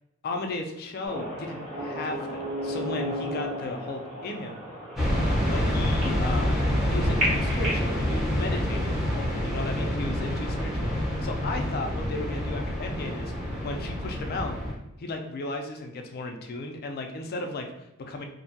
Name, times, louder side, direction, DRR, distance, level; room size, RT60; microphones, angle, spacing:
voice 1, 0.2-4.6 5.5-6.6 6.9-13.3 13.6-14.6 15.0-18.3, left 2 dB, 45° left, 4 dB, 0.3 m, -35 dB
sound 1, 1.0-7.9, equal, 30° right, 0.9 m, -34 dB
sound 2, 5.0-14.7, equal, ahead, 0.6 m, -27 dB
2.6 x 2.2 x 2.7 m, 0.88 s
head